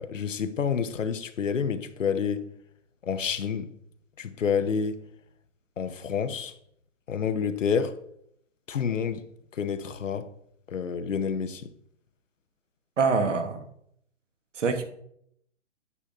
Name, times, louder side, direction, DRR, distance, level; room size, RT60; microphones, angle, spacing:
voice 1, 0.0-2.5 3.0-3.7 4.2-5.0 5.8-6.5 7.1-8.0 8.7-9.3 9.5-10.3 10.7-11.7, left 6 dB, 85° left, 0.9 m, -28 dB
voice 2, 13.0-13.6 14.6-14.8, right 4 dB, 75° right, 1.4 m, -24 dB
9.6 x 7.1 x 2.5 m
hypercardioid pair, 140°, 37 cm